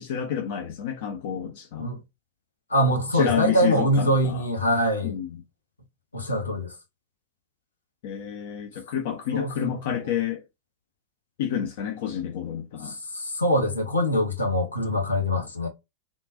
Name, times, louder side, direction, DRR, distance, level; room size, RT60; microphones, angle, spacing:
voice 1, 0.0-1.9 3.1-4.5 5.0-5.4 8.0-10.4 11.4-13.0, left 9 dB, 50° left, 0.5 m, -29 dB
voice 2, 2.7-5.2 6.1-6.7 9.3-9.8 12.8-15.7, equal, 80° left, 1.0 m, -24 dB
3.7 x 2.4 x 2.5 m
figure-of-eight pair, 90°, 0 cm